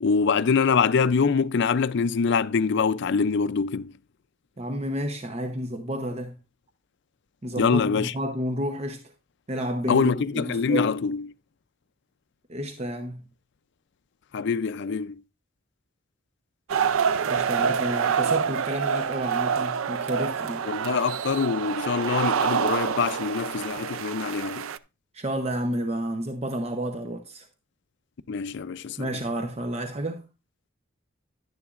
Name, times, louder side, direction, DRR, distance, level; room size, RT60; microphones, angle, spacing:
voice 1, 0.0-3.9 7.6-8.1 9.9-11.2 14.3-15.1 20.7-24.7 28.3-29.1, left 5 dB, 60° left, 0.5 m, -24 dB
voice 2, 4.6-6.4 7.4-9.0 9.5-10.9 12.5-13.2 17.2-20.7 25.1-27.5 29.0-30.2, right 1 dB, 30° right, 0.8 m, -30 dB
sound 1, 16.7-24.8, right 7 dB, 90° right, 0.4 m, -27 dB
11.0 x 9.9 x 2.4 m
head